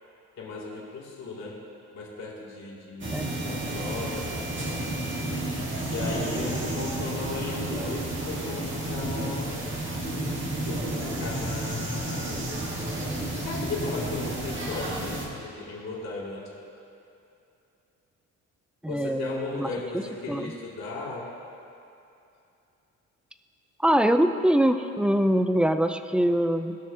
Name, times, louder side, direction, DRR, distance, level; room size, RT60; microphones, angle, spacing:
voice 1, 0.4-1.6 1.9-4.9 5.8-9.6 10.6-12.5 13.4-16.5 18.9-21.3, left 3 dB, 60° left, -4 dB, 2.5 m, -37 dB
sound 1, 3.0-15.2, right 1 dB, 40° right, 1.9 m, -31 dB
voice 2, 18.8-19.7 20.3-20.5 23.8-26.8, equal, 5° right, 8 dB, 0.5 m, -23 dB
19.0 x 6.4 x 2.8 m, 2.7 s
cardioid pair, 90°, 30 cm